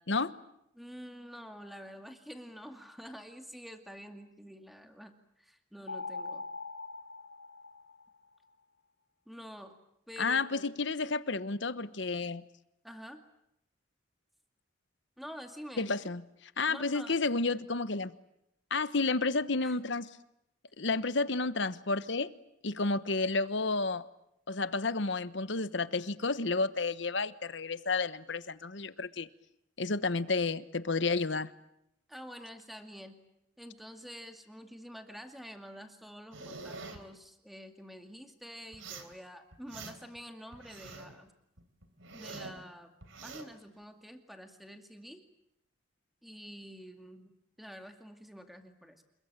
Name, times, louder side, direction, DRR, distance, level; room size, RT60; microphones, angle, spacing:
voice 1, 0.7-6.5 9.3-9.8 10.1-10.7 12.8-13.2 15.2-16.0 16.7-17.2 19.6-19.8 32.1-33.2 33.6-41.3 42.1-43.0 43.2-45.2 46.2-47.3 47.6-49.0, equal, ahead, 6 dB, 2.3 m, -48 dB
sound 1, 5.9-8.3, left 3 dB, 85° left, 4.3 m, -42 dB
voice 2, 10.2-12.4 15.8-16.2 16.6-18.1 18.7-20.1 20.8-22.3 22.6-24.0 24.5-29.3 29.8-31.5, left 3 dB, 65° left, 14 dB, 1.1 m, -31 dB
sound 2, 36.3-37.0 38.7-39.1 39.5-40.2 40.5-41.2 41.6-42.6 43.0-43.5, right 3 dB, 80° right, 3.8 m, -45 dB
28.0 x 22.0 x 9.0 m, 0.80 s
head